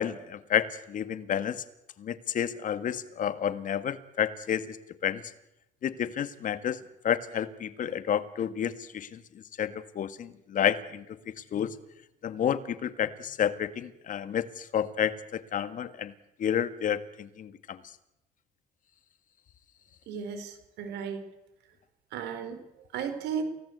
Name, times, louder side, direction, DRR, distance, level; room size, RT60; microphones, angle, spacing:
voice 1, 0.0-1.6 2.0-4.8 5.0-5.2 5.8-6.8 7.0-9.2 9.6-11.0 11.5-11.7 12.2-16.1 16.4-17.8, left 9 dB, 50° left, 12 dB, 1.7 m, -30 dB
voice 2, 20.1-21.2 22.1-23.4, right 7 dB, 85° right, 9 dB, 4.6 m, -35 dB
28.5 x 17.5 x 8.1 m, 0.93 s
cardioid pair, 110°, 17 cm